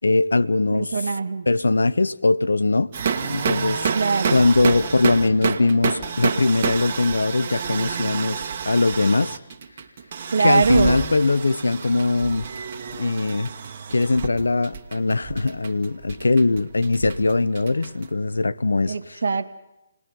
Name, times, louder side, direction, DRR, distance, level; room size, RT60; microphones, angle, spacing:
voice 1, 0.0-1.0 1.5-2.9 3.3-3.9 4.3-9.4 10.4-12.5 13.0-13.5 13.9-19.2, left 3 dB, 85° left, 0.8 m, -21 dB
voice 2, 0.7-1.5 3.9-4.4 10.3-11.0 18.9-19.6, right 4 dB, 70° right, 1.7 m, -22 dB
sound 1, 2.9-18.1, right 6 dB, 50° right, 1.9 m, -29 dB
28.5 x 20.0 x 5.4 m
figure-of-eight pair, 145°, 0 cm